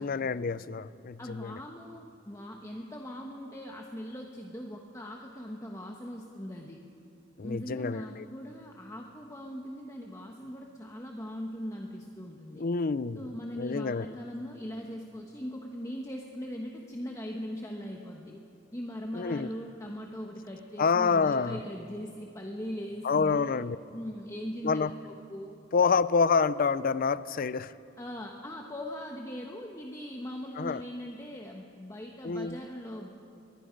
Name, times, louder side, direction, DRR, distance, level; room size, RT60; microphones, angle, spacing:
voice 1, 0.0-1.6 7.4-8.2 12.6-13.3 13.6-14.1 19.1-19.5 20.8-21.6 23.0-23.8 24.6-24.9 25.7-27.7 30.6-30.8 32.2-32.6, left 5 dB, 50° left, 16 dB, 0.5 m, -27 dB
voice 2, 1.2-6.8 7.4-12.6 13.1-18.4 18.7-23.4 23.9-25.6 28.0-33.1, equal, 15° left, 1 dB, 1.2 m, -40 dB
24.5 x 21.0 x 5.3 m, 2.6 s
head